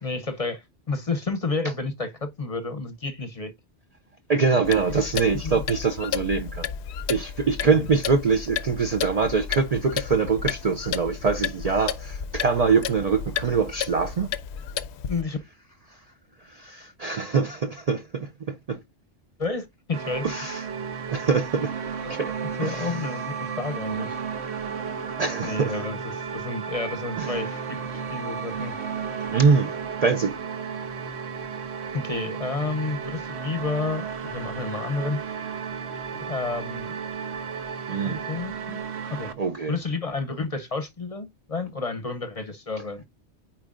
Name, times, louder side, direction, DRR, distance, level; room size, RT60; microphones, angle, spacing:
voice 1, 0.0-3.5 4.9-5.0 5.4-5.6 7.6-7.8 15.1-15.4 19.4-20.3 22.0-22.2 22.6-24.2 25.4-28.8 31.9-34.0 34.3-35.4 36.1-37.0 38.0-38.8 39.1-39.3 39.7-43.0, left 3 dB, 35° left, 0.7 m, -31 dB
voice 2, 4.3-6.7 7.1-14.3 16.4-18.8 20.2-20.6 21.1-21.7 22.1-22.3 22.6-23.0 25.2-25.8 27.2-27.3 29.3-29.7 30.0-30.4 37.9-38.2 39.4-39.8, right 5 dB, 50° right, 0.5 m, -24 dB
Clock, 4.6-15.2, left 8 dB, 75° left, 0.8 m, -32 dB
sound 1, 19.9-39.3, right 6 dB, 70° right, 1.2 m, -33 dB
8.4 x 4.6 x 2.5 m
omnidirectional pair, 1.2 m